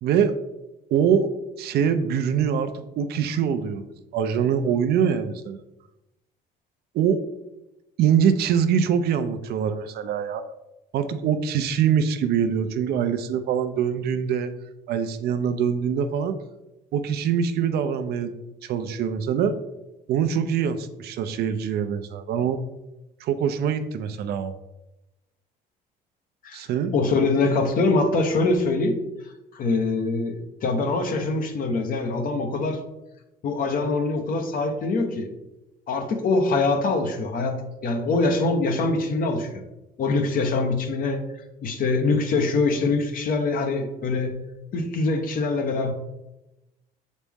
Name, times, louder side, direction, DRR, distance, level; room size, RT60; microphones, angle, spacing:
voice 1, 0.0-0.3 0.9-1.3 1.6-5.6 6.9-7.2 8.0-10.4 10.9-14.5 14.9-16.4 16.9-18.3 18.6-19.6 20.1-22.6 23.2-24.5 26.5-26.9, right 7 dB, 70° right, 9 dB, 0.6 m, -24 dB
voice 2, 26.9-29.0 29.5-32.8 33.4-35.3 35.9-39.6 40.0-41.2 41.6-44.4 44.7-45.9, left 3 dB, 55° left, 5 dB, 1.1 m, -24 dB
7.3 x 4.2 x 3.6 m, 0.95 s
cardioid pair, 110°, 17 cm